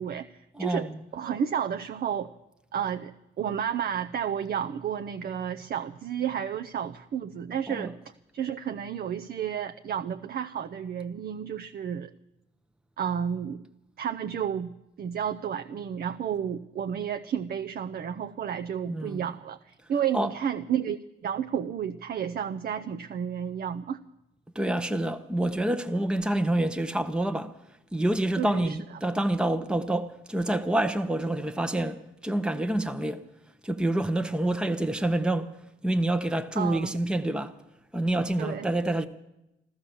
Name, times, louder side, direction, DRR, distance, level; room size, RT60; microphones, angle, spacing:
voice 1, 0.0-0.9 1.1-2.3 2.7-8.0 8.3-12.1 13.0-13.6 14.0-14.7 15.0-24.0 28.4-28.8 36.6-37.0 38.4-38.7, right 8 dB, 50° right, 0.6 m, -31 dB
voice 2, 0.5-1.0 7.7-7.9 18.9-19.3 20.1-20.3 24.5-27.5 27.9-33.2 33.6-35.6 35.8-37.5 37.9-39.1, right 1 dB, 5° right, 0.8 m, -27 dB
14.5 x 13.5 x 7.1 m
cardioid pair, 90°, 20 cm